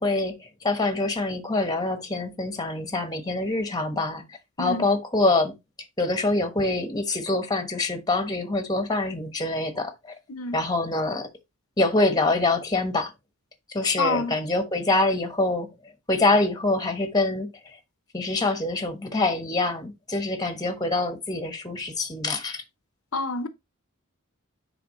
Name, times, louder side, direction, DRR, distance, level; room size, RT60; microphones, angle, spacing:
voice 1, 0.0-4.2 4.6-5.5 6.0-9.9 10.5-11.3 11.8-13.1 13.7-15.7 16.1-17.8 18.1-22.6, left 2 dB, 20° left, 1.2 m, -25 dB
voice 2, 10.3-10.6 14.0-14.4 23.1-23.5, left 3 dB, 75° left, 0.8 m, -27 dB
10.0 x 3.5 x 3.0 m
head